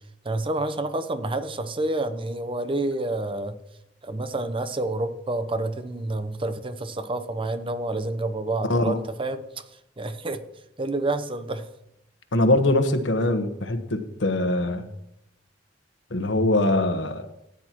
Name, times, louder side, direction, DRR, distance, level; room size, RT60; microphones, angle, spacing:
voice 1, 0.2-3.6 4.0-9.4 10.0-10.4 10.8-11.7, right 2 dB, 30° right, 11 dB, 0.7 m, -28 dB
voice 2, 8.6-9.0 12.3-14.9 16.1-17.3, left 2 dB, 75° left, 8 dB, 1.1 m, -22 dB
14.0 x 9.8 x 3.0 m, 0.87 s
head